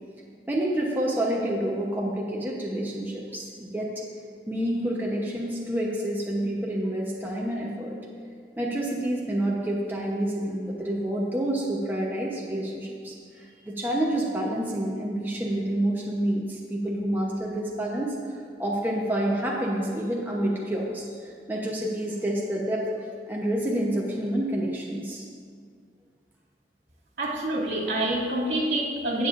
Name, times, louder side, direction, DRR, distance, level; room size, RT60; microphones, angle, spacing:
voice 1, 0.5-3.9 4.5-8.0 8.6-18.3 18.6-22.9 23.3-25.2, right 1 dB, 10° right, -3 dB, 0.8 m, -28 dB
voice 2, 27.2-29.3, right 1 dB, 70° right, -6 dB, 2.4 m, -27 dB
18.5 x 6.9 x 2.5 m, 2.1 s
head